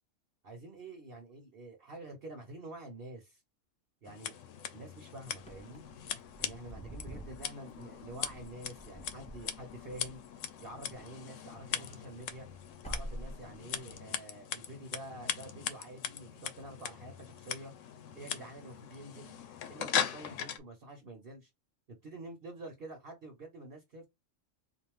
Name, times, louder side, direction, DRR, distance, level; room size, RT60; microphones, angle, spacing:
voice 1, 0.4-3.4 4.0-4.3 4.7-5.8 6.4-10.2 10.6-12.5 12.8-17.7 18.1-19.3 19.7-21.5 21.9-24.1, right 1 dB, 50° right, 1.1 m, -48 dB
Scissors, 4.1-20.6, left 8 dB, 75° left, 1.0 m, -40 dB
Wind / Car, 5.4-11.2 11.5-13.9, right 1 dB, 10° left, 0.5 m, -48 dB
3.9 x 2.5 x 3.5 m
omnidirectional pair, 1.3 m